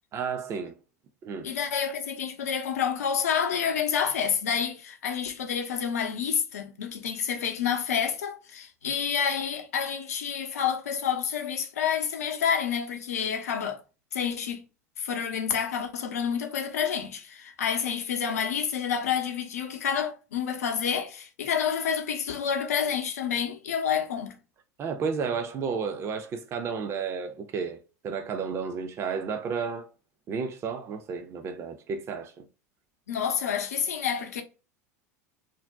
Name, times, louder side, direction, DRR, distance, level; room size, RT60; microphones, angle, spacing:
voice 1, 0.1-0.8 1.2-1.5 24.8-27.8 28.0-29.9 30.3-32.4, right 5 dB, 30° right, 0.5 m, -32 dB
voice 2, 1.4-13.8 14.1-14.6 15.0-24.4 33.1-34.4, left 7 dB, 70° left, 0.6 m, -29 dB
2.6 x 2.1 x 3.4 m
figure-of-eight pair, 80°, 9 cm